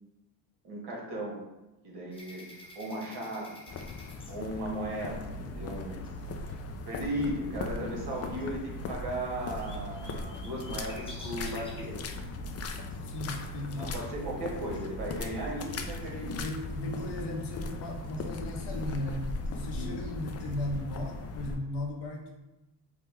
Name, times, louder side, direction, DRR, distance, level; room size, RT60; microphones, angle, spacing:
voice 1, 0.6-1.4 1.8-2.4 2.7-3.6 4.3-6.1 6.8-12.0 13.8-16.4 19.7-20.0, right 1 dB, 65° right, -2 dB, 1.3 m, -36 dB
sound 1, 2.1-5.1 8.7-8.8 9.0-12.0 13.7-13.8 14.2-14.9, left 1 dB, 15° left, 1.0 m, -50 dB
sound 2, 3.7-21.6, left 4 dB, 35° left, 0.5 m, -39 dB
sound 3, 5.1-21.1, right 3 dB, 45° right, 1.4 m, -44 dB
voice 2, 13.0-13.9 16.4-22.3, left 1 dB, 70° left, 1 dB, 0.9 m, -36 dB
3.5 x 2.1 x 3.5 m, 1.0 s
supercardioid pair, 70°, 42 cm